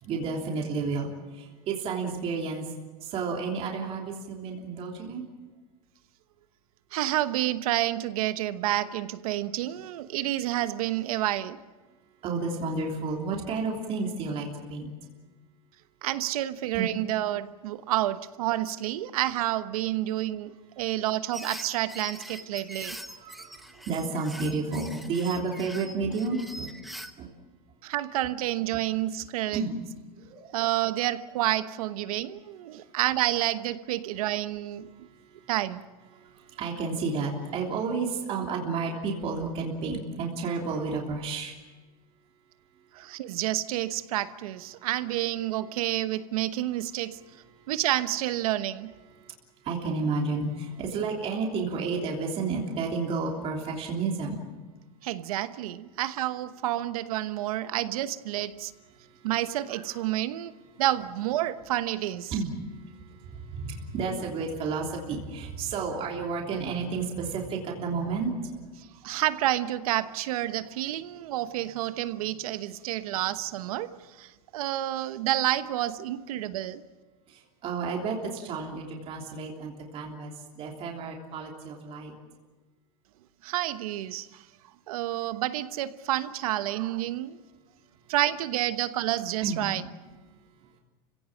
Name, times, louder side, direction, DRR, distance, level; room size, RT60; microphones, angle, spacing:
voice 1, 0.0-2.7 3.0-5.3 12.2-14.9 16.7-16.9 23.1-26.7 27.2-27.3 29.5-29.7 30.2-30.6 36.2-41.5 49.6-54.4 59.7-60.0 62.3-68.7 69.0-69.1 77.3-82.1 89.4-89.6, right 4 dB, 30° right, 0 dB, 3.3 m, -31 dB
voice 2, 6.9-11.6 16.0-23.0 27.8-29.6 30.5-35.1 35.5-35.8 42.9-47.2 47.7-48.9 55.0-58.7 59.2-60.5 60.8-62.3 68.8-76.8 83.4-84.4 84.9-87.4 88.1-89.8, right 14 dB, 70° right, 12 dB, 1.1 m, -29 dB
sound 1, 21.3-27.1, equal, ahead, 0.9 m, -42 dB
29.5 x 16.5 x 7.4 m, 1.3 s
supercardioid pair, 155°, 19 cm